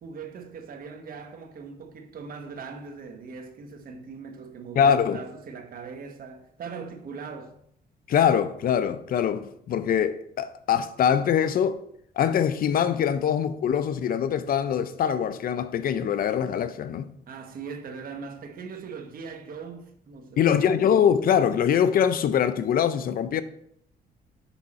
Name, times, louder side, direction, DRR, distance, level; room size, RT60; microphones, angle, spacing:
voice 1, 0.0-7.5 17.3-20.6, right 5 dB, 55° right, 1.1 m, -40 dB
voice 2, 4.8-5.2 8.1-11.8 12.2-17.1 20.4-23.4, left 8 dB, 60° left, 0.5 m, -23 dB
7.0 x 5.6 x 4.2 m
cardioid pair, 125°, 17 cm